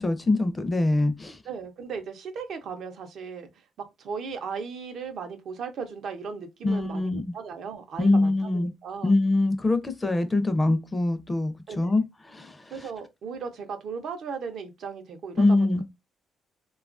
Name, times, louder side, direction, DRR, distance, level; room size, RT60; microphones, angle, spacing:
voice 1, 0.0-1.4 6.6-7.3 8.0-8.7 9.0-12.0 12.3-12.6 15.4-15.8, left 2 dB, 20° left, 0.5 m, -23 dB
voice 2, 1.4-3.5 3.8-9.1 11.7-11.9 12.7-15.7, right 5 dB, 70° right, 0.6 m, -37 dB
2.9 x 2.3 x 2.4 m
cardioid pair, 90°, 0 cm